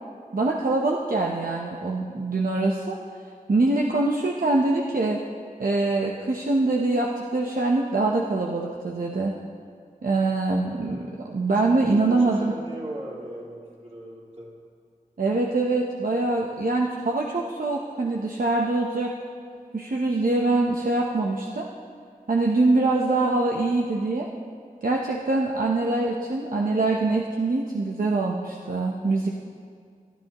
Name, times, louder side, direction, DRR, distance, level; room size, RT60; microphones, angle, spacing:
voice 1, 0.3-3.0 3.5-5.2 5.6-9.4 10.0-12.5 15.2-19.1 19.7-21.7 22.3-24.3 24.8-29.3, right 2 dB, 75° right, -1 dB, 0.9 m, -24 dB
voice 2, 11.5-14.5, right 1 dB, 50° right, -6 dB, 3.7 m, -38 dB
21.0 x 12.5 x 3.0 m, 2.2 s
wide cardioid pair, 65°, 15 cm